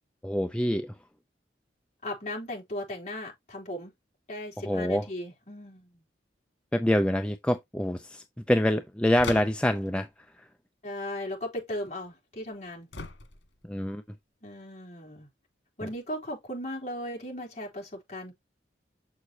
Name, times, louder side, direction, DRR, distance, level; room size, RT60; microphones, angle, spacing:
voice 1, 0.2-0.9 4.6-5.1 6.7-10.1 10.4-10.5 13.7-14.0, left 1 dB, 5° left, 0.4 m, -26 dB
voice 2, 2.0-3.9 4.3-6.0 10.8-12.9 14.4-15.3 15.8-18.3, left 1 dB, 40° left, 3.8 m, -37 dB
sound 1, 9.2-9.9 12.9-13.6, left 3 dB, 85° left, 1.7 m, -39 dB
7.2 x 6.4 x 2.8 m
head